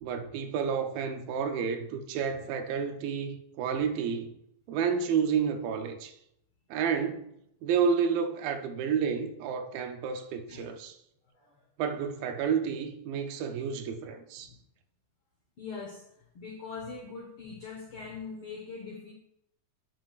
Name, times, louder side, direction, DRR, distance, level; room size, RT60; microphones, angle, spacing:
voice 1, 0.0-4.3 4.7-6.2 6.7-7.2 7.6-11.0 11.8-14.5, right 6 dB, 80° right, 2.4 m, -30 dB
voice 2, 11.3-11.6 14.4-14.6 15.6-16.1 16.3-19.1, left 4 dB, 75° left, 1.2 m, -42 dB
10.5 x 5.8 x 2.4 m
omnidirectional pair, 4.1 m